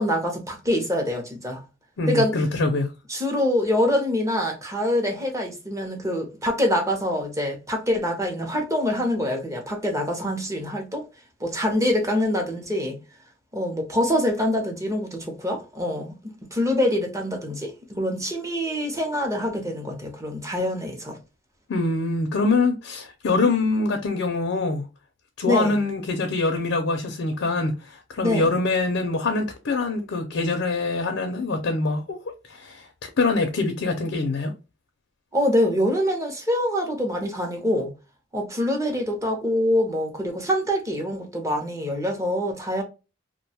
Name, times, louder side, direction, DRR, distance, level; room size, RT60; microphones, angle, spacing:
voice 1, 0.0-1.6 2.1-2.4 3.1-11.0 11.4-13.0 13.5-16.1 16.5-21.2 25.5-25.8 28.2-28.5 35.3-37.9 38.3-42.8, left 1 dB, 15° right, 0.7 m, -25 dB
voice 2, 2.0-2.9 21.7-24.9 25.4-32.2 32.5-32.9 33.2-34.5, left 3 dB, 70° left, 0.5 m, -24 dB
2.5 x 2.2 x 2.8 m
head